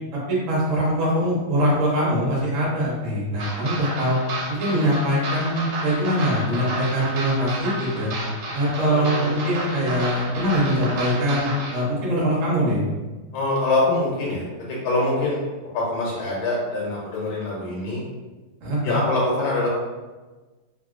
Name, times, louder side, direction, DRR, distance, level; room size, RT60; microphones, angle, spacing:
voice 1, 0.3-4.2 4.5-8.1 8.5-12.8 18.6-19.0, equal, 50° right, -6 dB, 1.0 m, -23 dB
sound 1, 3.4-11.8, right 2 dB, 90° right, 1.5 m, -31 dB
voice 2, 8.8-9.4 13.3-15.4 15.7-18.0 18.8-19.7, left 2 dB, 75° left, -4 dB, 1.4 m, -24 dB
3.1 x 2.6 x 2.4 m, 1.2 s
omnidirectional pair, 2.3 m